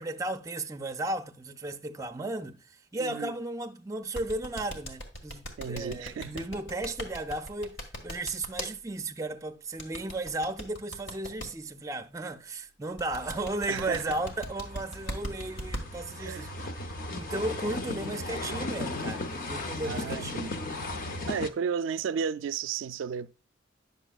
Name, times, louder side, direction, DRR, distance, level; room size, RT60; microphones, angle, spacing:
voice 1, 0.0-2.6 2.9-16.5 17.1-20.4, right 2 dB, 15° right, 0.4 m, -35 dB
voice 2, 3.0-3.3 5.6-6.4 13.7-14.2 16.2-16.5 19.8-20.6 21.3-23.3, right 6 dB, 85° right, 0.3 m, -33 dB
sound 1, 4.1-8.7 9.8-11.5 13.0-15.8, equal, 70° left, 1.7 m, -38 dB
sound 2, 13.1-21.5, left 2 dB, 50° left, 0.7 m, -37 dB
9.9 x 6.7 x 2.3 m
head